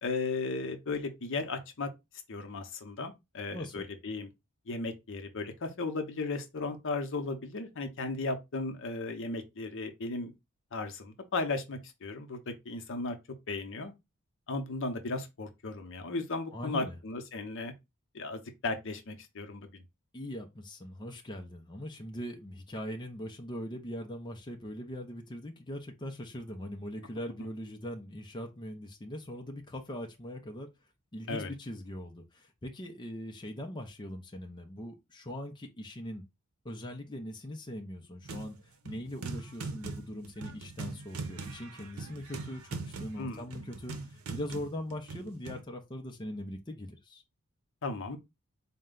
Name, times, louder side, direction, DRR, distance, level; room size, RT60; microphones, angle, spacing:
voice 1, 0.0-1.9 2.3-4.3 4.7-10.3 10.7-13.2 13.5-13.9 14.5-17.7 18.1-19.8 31.3-31.5 43.2-43.4 47.8-48.2, left 3 dB, 60° left, 0.7 m, -35 dB
voice 2, 3.5-3.9 16.5-17.0 20.1-30.7 31.1-36.2 36.6-47.2, left 1 dB, 20° left, 0.6 m, -41 dB
sound 1, 38.2-38.6 38.9-45.6, right 3 dB, 85° right, 0.7 m, -41 dB
4.2 x 2.2 x 3.7 m
head